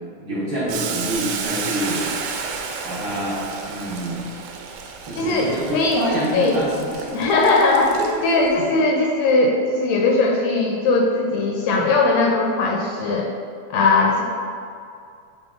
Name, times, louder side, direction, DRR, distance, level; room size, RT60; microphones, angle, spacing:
voice 1, 0.2-2.0 2.8-4.3 5.0-7.1 7.9-8.6, right 1 dB, 55° right, -10 dB, 1.4 m, -27 dB
Boiling, 0.7-8.5, right 5 dB, 90° right, 2.1 m, -31 dB
voice 2, 5.2-6.6 7.1-8.0 8.2-13.3 13.7-14.2, left 3 dB, 75° left, 0 dB, 1.7 m, -19 dB
7.5 x 3.9 x 3.6 m, 2.4 s
omnidirectional pair, 3.5 m